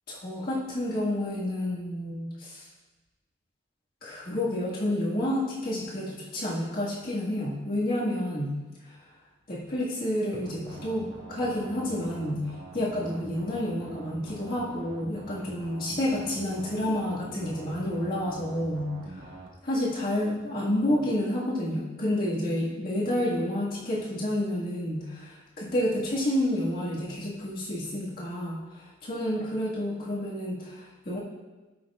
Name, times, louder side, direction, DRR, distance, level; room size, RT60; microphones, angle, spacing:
voice 1, 0.1-2.7 4.0-8.5 8.8-9.0 9.5-19.3 19.6-31.2, left 1 dB, 50° left, -6 dB, 1.8 m, -30 dB
sound 1, 10.4-19.5, right 2 dB, 85° right, 1.4 m, -44 dB
13.0 x 6.4 x 2.4 m, 1.2 s
head